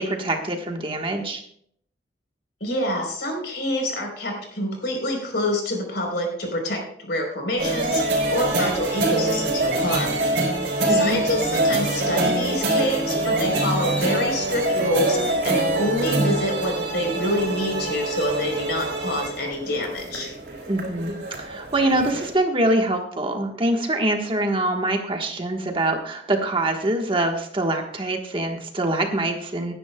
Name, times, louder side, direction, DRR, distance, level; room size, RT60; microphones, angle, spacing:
voice 1, 0.0-1.4 10.9-11.2 20.7-29.7, right 1 dB, 30° right, 3 dB, 1.3 m, -24 dB
voice 2, 2.6-8.0 8.3-10.2 10.9-20.3, left 1 dB, 65° left, 2 dB, 3.8 m, -26 dB
sound 1, 7.6-22.3, right 2 dB, 65° right, 4.0 m, -25 dB
19.0 x 10.0 x 2.2 m, 0.65 s
head